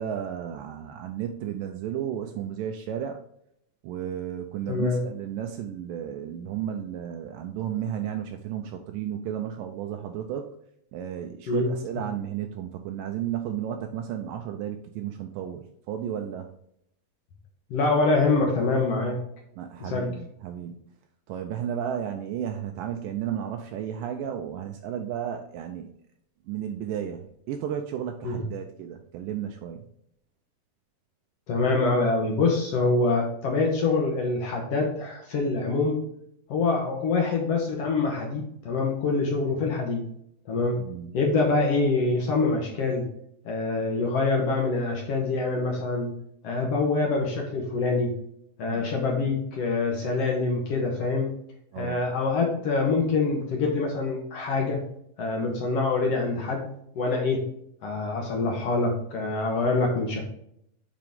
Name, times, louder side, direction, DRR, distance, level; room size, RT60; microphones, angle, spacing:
voice 1, 0.0-3.2 3.8-10.5 10.9-16.5 19.6-21.0 21.3-25.9 26.5-29.8 40.7-41.1 48.7-48.9 51.7-52.0, right 9 dB, 80° right, 5 dB, 2.1 m, -33 dB
voice 2, 4.7-5.0 11.5-11.7 17.7-19.2 19.8-20.1 28.2-28.5 31.5-36.0 36.5-40.0 40.4-40.8 41.1-43.1 43.4-46.1 46.4-48.1 48.6-51.3 51.8-54.8 55.2-56.7 56.9-57.4 57.8-60.2, left 3 dB, 65° left, 0 dB, 1.6 m, -25 dB
7.7 x 4.7 x 3.5 m, 0.72 s
omnidirectional pair, 4.2 m